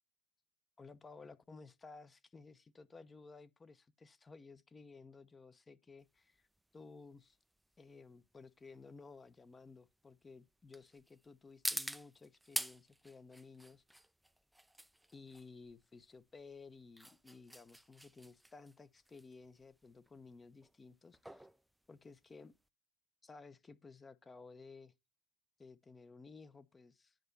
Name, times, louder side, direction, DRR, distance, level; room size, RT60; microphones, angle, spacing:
voice 1, 0.8-6.5 6.7-7.4 7.8-13.8 15.1-21.5 21.9-22.5 23.2-24.9 25.6-27.2, left 4 dB, 25° left, 0.9 m, -56 dB
sound 1, 6.0-22.7, right 1 dB, 5° right, 0.5 m, -47 dB
9.3 x 4.5 x 5.3 m
supercardioid pair, 85°, 0 cm